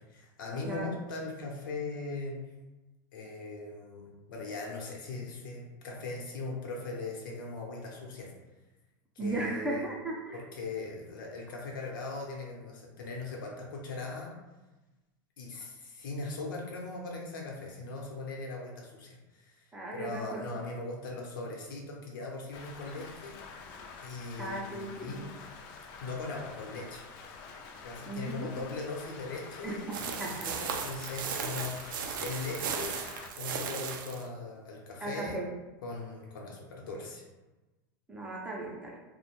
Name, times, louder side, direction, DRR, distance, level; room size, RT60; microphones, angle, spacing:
voice 1, 0.0-2.4 3.1-8.3 9.1-9.9 10.3-14.3 15.4-23.4 24.0-24.6 25.0-25.3 26.0-27.1 27.8-33.0 33.3-35.4 35.8-37.2, left 3 dB, 90° left, -1 dB, 0.7 m, -39 dB
voice 2, 0.6-0.9 9.2-10.4 19.7-20.4 24.4-25.3 28.1-28.5 29.6-30.5 35.0-35.5 38.1-39.0, right 2 dB, 10° right, -2 dB, 0.5 m, -36 dB
Rain, 22.5-33.3, left 4 dB, 50° left, 0.4 m, -47 dB
sound 1, 29.9-34.3, right 6 dB, 85° right, 0.4 m, -36 dB
2.4 x 2.1 x 2.9 m, 1.1 s
supercardioid pair, 130°, 11 cm